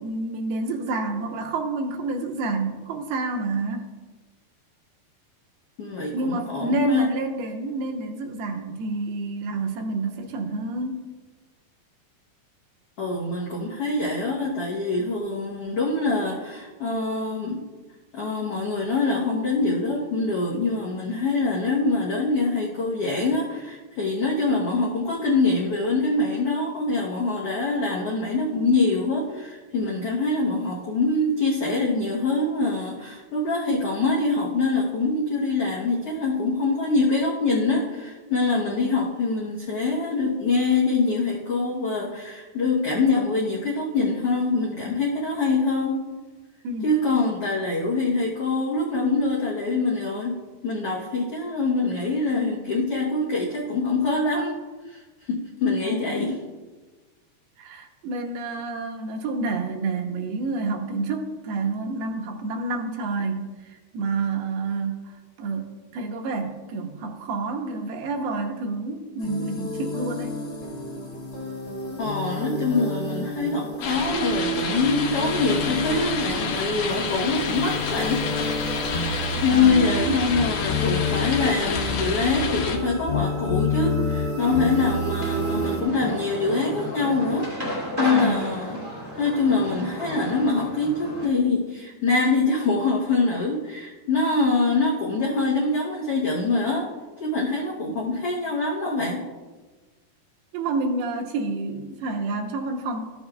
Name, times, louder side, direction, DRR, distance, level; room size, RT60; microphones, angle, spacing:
voice 1, 0.0-3.9 6.1-11.1 46.6-46.9 55.8-56.4 57.6-70.4 79.5-80.2 88.1-88.4 100.5-103.0, right 3 dB, 80° right, 2 dB, 2.8 m, -29 dB
voice 2, 5.8-7.1 13.0-17.6 18.1-46.0 46.8-50.4 50.6-54.6 54.8-56.3 72.0-78.3 79.4-88.8 89.2-96.9 97.2-99.2, left 3 dB, 90° left, -5 dB, 1.3 m, -24 dB
sound 1, 69.2-85.8, left 2 dB, 40° left, 2.1 m, -29 dB
sound 2, 73.8-82.8, left 4 dB, 70° left, 2.2 m, -29 dB
sound 3, 84.4-91.3, equal, 20° right, 0.6 m, -33 dB
14.5 x 7.1 x 2.3 m, 1.3 s
omnidirectional pair, 4.5 m